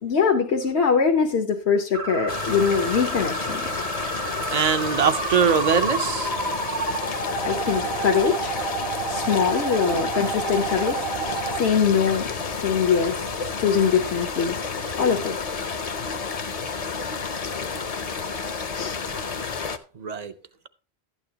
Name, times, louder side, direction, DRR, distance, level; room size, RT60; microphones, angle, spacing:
voice 1, 0.0-3.7 7.4-8.5 9.1-11.1 11.6-13.2 13.6-14.6 15.0-15.4 18.7-19.0, left 6 dB, 75° left, 1.2 m, -22 dB
sound 1, 1.9-11.6, right 5 dB, 65° right, 1.4 m, -30 dB
sound 2, 2.3-19.8, left 5 dB, 40° left, 0.7 m, -30 dB
voice 2, 4.5-6.3 9.9-10.1 19.9-20.3, right 6 dB, 45° right, 0.7 m, -22 dB
12.0 x 8.9 x 2.8 m
omnidirectional pair, 1.1 m